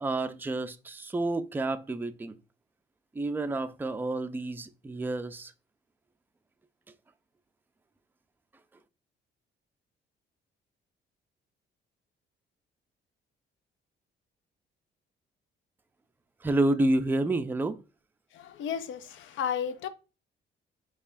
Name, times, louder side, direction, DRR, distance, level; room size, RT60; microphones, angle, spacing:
voice 1, 0.0-2.4 3.1-5.5 16.4-17.8, right 2 dB, 10° right, 0.3 m, -29 dB
voice 2, 18.3-19.9, left 8 dB, 75° left, 0.5 m, -33 dB
4.5 x 2.9 x 2.5 m
cardioid pair, 90°, 20 cm